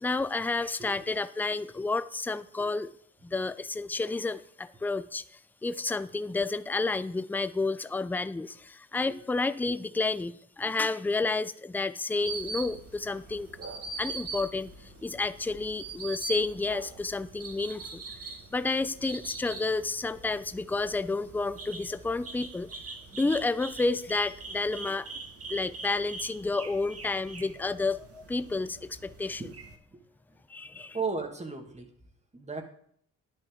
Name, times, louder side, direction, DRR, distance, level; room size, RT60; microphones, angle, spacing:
voice 1, 0.0-2.9 3.2-5.2 5.6-13.5 14.0-14.7 15.0-18.0 18.5-22.7 23.1-25.1 25.5-29.4 30.5-31.0, left 3 dB, 5° left, 14 dB, 0.4 m, -30 dB
sound 1, 12.2-29.8, right 3 dB, 45° right, 1.7 m, -43 dB
voice 2, 30.9-31.9 32.3-32.6, right 4 dB, 20° right, 4 dB, 2.0 m, -34 dB
10.5 x 9.2 x 3.8 m, 0.64 s
cardioid pair, 80°, 34 cm